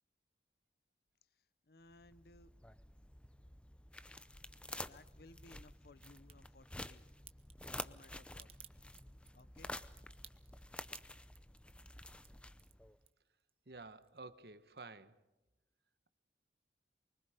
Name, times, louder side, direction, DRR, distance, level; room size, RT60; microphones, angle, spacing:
voice 1, 1.2-2.5 4.8-7.1 7.8-8.5 9.3-9.8, left 2 dB, 60° left, 0.8 m, -61 dB
sound 1, 1.9-13.0, left 1 dB, 5° left, 0.6 m, -50 dB
Crack, 5.9-6.3 7.3-13.5 13.8-14.5 14.8-14.9, right 10 dB, 35° right, 1.0 m, -59 dB
voice 2, 13.7-15.2, right 3 dB, 65° right, 1.2 m, -52 dB
25.0 x 24.0 x 5.1 m
head